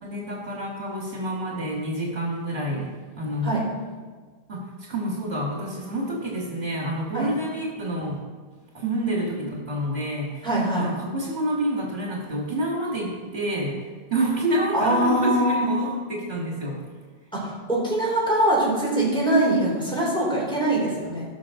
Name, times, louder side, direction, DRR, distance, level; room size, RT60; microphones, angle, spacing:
voice 1, 0.0-3.6 4.5-8.2 8.7-10.5 10.8-13.8 14.1-16.8, right 1 dB, 65° right, -2 dB, 2.1 m, -28 dB
voice 2, 10.4-10.9 14.7-16.0 17.3-21.3, right 1 dB, 5° left, -6 dB, 3.8 m, -23 dB
18.5 x 6.2 x 3.8 m, 1.4 s
omnidirectional pair, 1.1 m